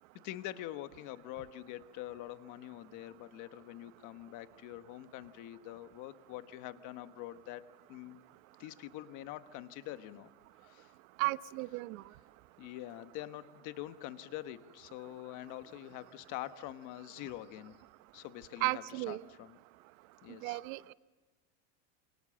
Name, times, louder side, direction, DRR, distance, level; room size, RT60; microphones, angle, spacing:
voice 1, 0.2-7.6 7.9-8.2 8.6-10.3 10.6-10.9 12.6-17.8 18.1-19.6 20.2-20.6, left 14 dB, 45° left, 11 dB, 1.2 m, -45 dB
voice 2, 11.2-12.0 18.6-19.2 20.4-20.8, right 21 dB, 65° right, 16 dB, 0.9 m, -34 dB
27.0 x 26.5 x 7.6 m, 1.2 s
supercardioid pair, 165°, 44 cm